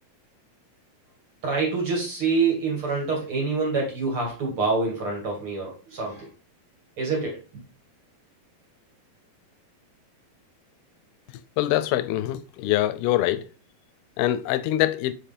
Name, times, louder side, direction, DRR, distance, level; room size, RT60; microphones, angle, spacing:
voice 1, 1.4-6.3 7.0-7.4, right 4 dB, 45° right, 2.0 m, -26 dB
voice 2, 11.6-13.4 14.2-15.1, left 14 dB, 85° left, 2.4 m, -24 dB
5.8 x 5.1 x 3.4 m
omnidirectional pair, 4.4 m